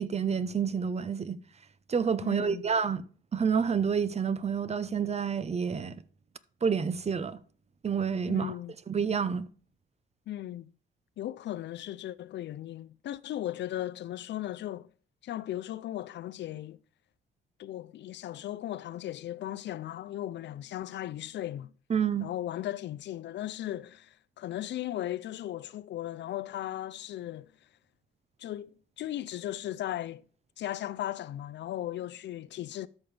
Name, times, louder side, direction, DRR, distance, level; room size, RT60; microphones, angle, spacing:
voice 1, 0.0-1.4 1.9-3.0 3.3-6.0 6.6-7.4 7.8-8.5 8.9-9.5 21.9-22.3, right 6 dB, 35° right, 0.7 m, -28 dB
voice 2, 2.2-2.7 8.3-8.7 10.3-10.7 11.2-14.9 15.2-16.8 17.6-21.7 22.2-27.5 28.4-28.7 29.0-30.2 30.6-32.9, left 13 dB, 65° left, 0.5 m, -37 dB
13.0 x 5.5 x 3.4 m
cardioid pair, 90°, 20 cm